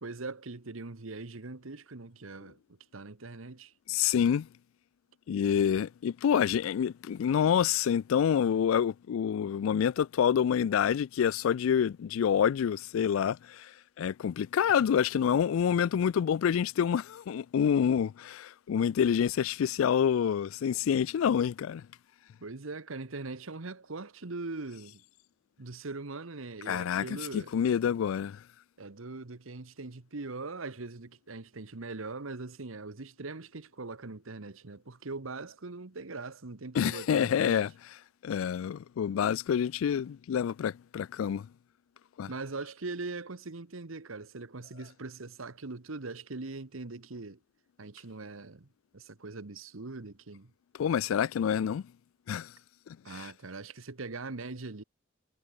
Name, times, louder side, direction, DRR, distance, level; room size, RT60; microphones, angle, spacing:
voice 1, 0.0-2.6 2.9-3.7 22.4-25.0 25.6-27.5 28.8-37.7 42.3-47.4 47.8-48.7 48.9-50.5 53.0-54.8, right 3 dB, 90° right, 1.3 m, -41 dB
voice 2, 3.9-4.5 5.3-13.7 14.0-21.8 26.7-28.4 36.7-37.7 38.2-41.5 42.2-42.3 50.8-51.8 52.3-52.5 53.2-53.3, left 8 dB, 85° left, 0.3 m, -27 dB
head